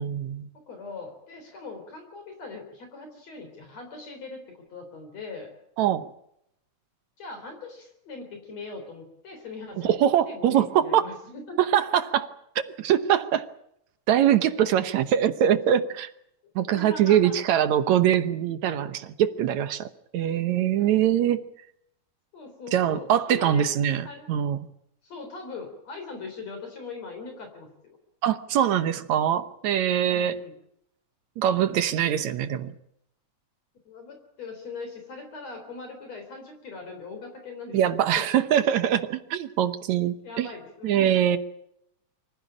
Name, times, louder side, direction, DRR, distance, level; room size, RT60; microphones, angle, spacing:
voice 1, 0.0-0.5 5.8-6.1 9.8-11.1 11.6-12.3 12.6-13.5 14.1-16.1 16.6-19.9 20.1-21.4 22.7-24.6 28.2-30.4 31.4-32.7 37.7-40.5 40.8-41.4, right 10 dB, 75° right, 11 dB, 2.3 m, -23 dB
voice 2, 0.7-4.4 4.7-5.5 7.2-10.0 10.3-11.6 14.5-14.7 16.7-17.3 20.8-20.9 22.3-23.7 24.0-24.3 25.0-27.7 30.0-30.5 33.9-38.2 40.2-41.2, left 4 dB, 60° left, 5 dB, 4.8 m, -40 dB
25.0 x 15.0 x 10.0 m, 0.76 s
omnidirectional pair, 3.4 m